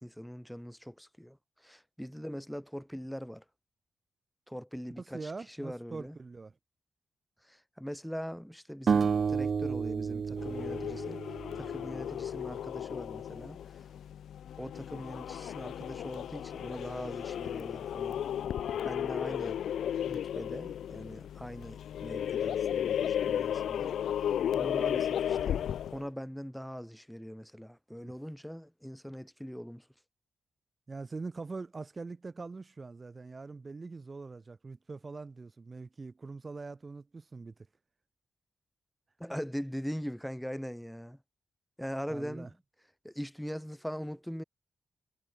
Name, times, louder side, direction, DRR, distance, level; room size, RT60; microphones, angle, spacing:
voice 1, 0.0-3.4 4.5-6.2 7.4-11.3 11.5-13.9 14.6-18.2 18.8-19.6 20.1-29.9 39.2-41.2 41.8-42.6 43.0-44.4, equal, ahead, 3.2 m, -41 dB
voice 2, 5.1-6.5 28.0-28.1 30.9-37.5 42.1-42.5, right 3 dB, 30° right, 1.3 m, -43 dB
sound 1, 8.9-12.0, right 6 dB, 50° right, 1.5 m, -31 dB
sound 2, 10.4-26.1, left 10 dB, 90° left, 0.8 m, -34 dB
wide cardioid pair, 120°, 0 cm